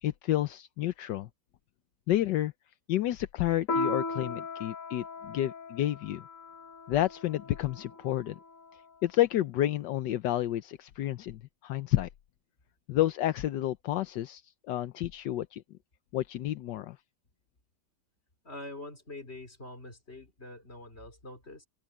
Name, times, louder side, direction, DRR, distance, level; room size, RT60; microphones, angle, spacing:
voice 1, 0.0-1.3 2.1-2.5 2.9-6.2 6.9-8.3 9.0-12.1 12.9-14.4 14.7-15.6 16.1-17.0, left 13 dB, 80° left, 1.4 m, -30 dB
Piano, 3.7-8.6, left 3 dB, 50° left, 1.4 m, -37 dB
voice 2, 18.4-21.7, left 2 dB, 35° left, 4.8 m, -45 dB
open air
omnidirectional pair, 1.9 m